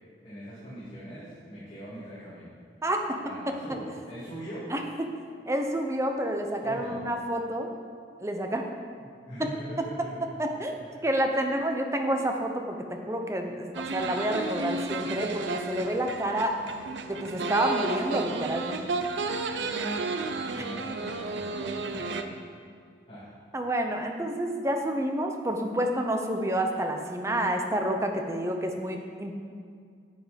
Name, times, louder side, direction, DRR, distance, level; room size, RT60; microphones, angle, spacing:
voice 1, 0.2-2.5 3.2-4.7 6.6-7.0 8.9-10.3 10.8-11.0 19.6-22.4 23.1-23.3, equal, 30° left, -11 dB, 2.6 m, -42 dB
voice 2, 2.8-3.2 3.5-3.6 4.7-5.1 5.5-7.7 8.2-8.7 10.4-10.7 11.0-16.6 17.1-18.8 20.6-20.7 23.5-29.4, right 1 dB, 15° right, 4 dB, 0.8 m, -29 dB
sound 1, 13.7-22.2, right 3 dB, 90° right, 0.6 m, -33 dB
9.3 x 8.0 x 5.2 m, 2.2 s
head